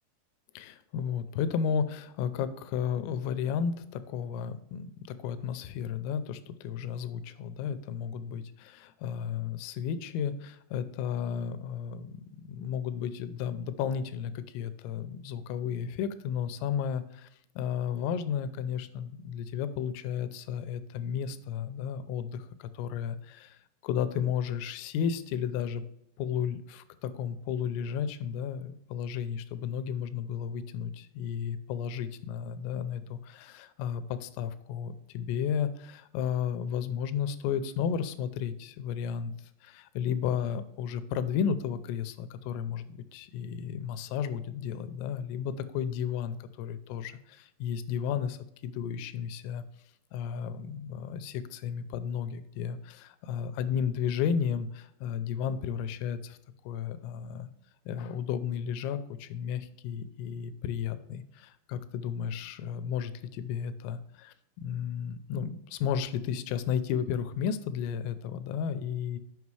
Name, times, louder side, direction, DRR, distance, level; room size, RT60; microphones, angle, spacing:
voice 1, 0.6-17.3 17.6-25.8 26.2-39.3 39.6-49.6 50.1-56.4 56.6-57.5 57.9-69.2, left 8 dB, 85° left, 12 dB, 3.1 m, -33 dB
8.3 x 5.5 x 4.7 m, 0.75 s
omnidirectional pair, 6.0 m